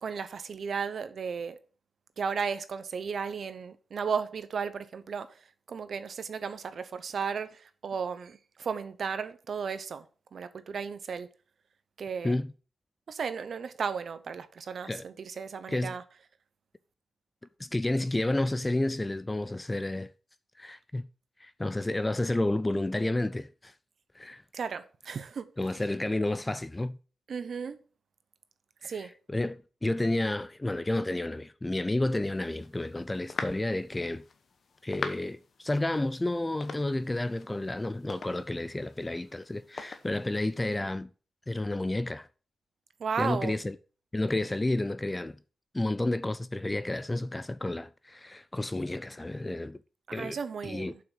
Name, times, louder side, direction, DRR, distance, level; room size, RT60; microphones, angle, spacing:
voice 1, 0.0-1.6 2.2-5.4 5.7-10.1 10.3-11.3 12.0-12.4 13.1-16.0 24.5-25.5 27.3-27.8 28.8-29.1 43.0-43.6 50.1-51.0, right 6 dB, 55° right, 0.9 m, -34 dB
voice 2, 17.6-20.1 20.6-21.0 21.4-23.7 24.2-24.4 25.6-27.0 28.8-34.2 34.8-41.1 41.5-42.3 43.2-43.8 44.1-45.4 45.7-49.8 50.1-50.4 50.6-50.9, left 2 dB, 10° left, 0.3 m, -31 dB
sound 1, 32.3-40.8, left 5 dB, 45° left, 1.0 m, -44 dB
7.4 x 5.7 x 6.4 m
wide cardioid pair, 175°, 0 cm